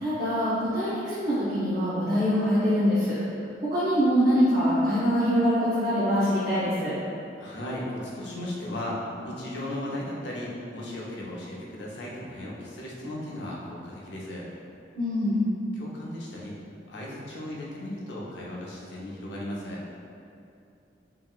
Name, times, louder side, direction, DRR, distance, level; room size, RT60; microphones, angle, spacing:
voice 1, 0.0-3.2 3.7-6.9 14.9-15.4, equal, 45° right, -12 dB, 0.6 m, -24 dB
voice 2, 7.4-9.0 9.2-14.5 15.7-16.5 16.9-19.8, left 1 dB, 85° left, -4 dB, 0.6 m, -36 dB
2.9 x 2.7 x 2.3 m, 2.5 s
head